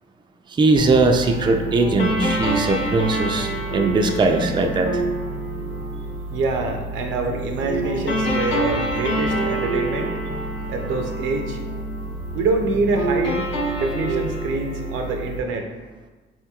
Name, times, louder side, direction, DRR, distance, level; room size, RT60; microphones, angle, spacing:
voice 1, 0.5-5.0, right 3 dB, 25° right, 4 dB, 0.4 m, -20 dB
sound 1, 0.8-15.4, right 1 dB, 65° left, 0.7 m, -27 dB
voice 2, 6.3-10.2 10.7-11.6 12.3-13.5 13.8-15.7, right 3 dB, 80° right, 4 dB, 0.5 m, -25 dB
4.3 x 2.8 x 2.3 m, 1.3 s
cardioid pair, 90°, 20 cm